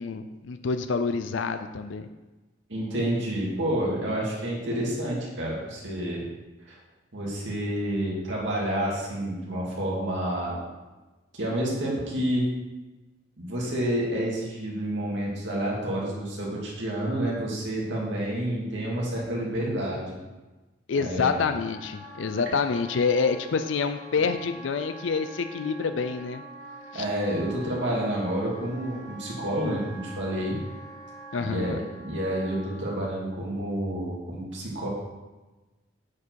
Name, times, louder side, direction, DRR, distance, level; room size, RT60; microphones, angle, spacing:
voice 1, 0.0-2.1 20.9-26.4 26.9-27.1 31.3-31.8, left 5 dB, 80° left, 9 dB, 0.5 m, -27 dB
voice 2, 2.7-6.2 6.7-6.8 7.1-10.6 11.3-12.5 13.4-20.2 20.9-21.4 26.9-30.6 31.4-34.9, right 1 dB, 75° right, -4 dB, 2.4 m, -29 dB
Wind instrument woodwind instrument, 21.6-32.9, right 2 dB, 30° left, 1.9 m, -45 dB
8.3 x 4.8 x 4.7 m, 1.1 s
head